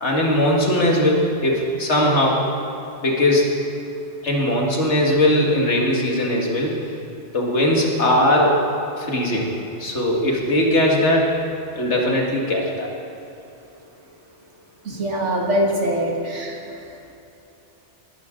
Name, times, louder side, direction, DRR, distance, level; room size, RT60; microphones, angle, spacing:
voice 1, 0.0-2.4 3.0-3.5 4.2-6.8 7.3-8.6 9.0-9.5 9.8-11.4 11.8-12.9, left 1 dB, 75° left, -1 dB, 2.2 m, -19 dB
voice 2, 14.8-16.6, equal, 80° right, 0 dB, 2.1 m, -23 dB
19.5 x 11.5 x 3.8 m, 2.9 s
omnidirectional pair, 1.2 m